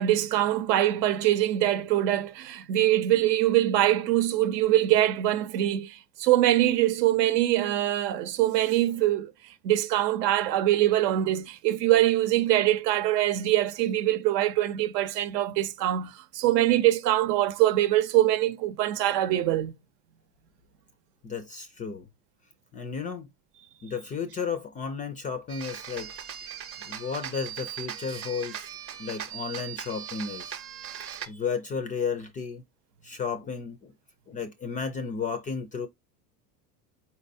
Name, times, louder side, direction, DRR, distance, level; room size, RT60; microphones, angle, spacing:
voice 1, 0.0-9.3 9.6-19.7, right 14 dB, 80° right, 0.8 m, -23 dB
voice 2, 21.2-22.1 22.7-23.3 23.8-26.1 26.4-26.6 26.8-28.7 29.0-30.6 31.0-32.6 33.0-33.9 34.3-35.9, left 6 dB, 20° left, 0.3 m, -33 dB
sound 1, 25.5-31.3, right 9 dB, 30° right, 0.7 m, -39 dB
4.4 x 4.2 x 2.6 m
supercardioid pair, 105°, 48 cm